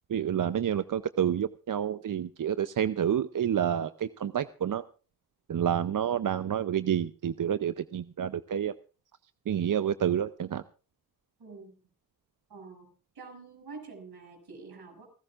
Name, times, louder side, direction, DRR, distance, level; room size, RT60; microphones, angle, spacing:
voice 1, 0.1-4.8 5.5-8.7 9.5-10.6, right 9 dB, 55° right, 12 dB, 0.7 m, -29 dB
voice 2, 11.4-11.7 12.5-12.9 13.1-15.1, right 4 dB, 80° right, 3 dB, 6.4 m, -46 dB
28.5 x 14.0 x 2.5 m, 0.36 s
cardioid pair, 55°, 37 cm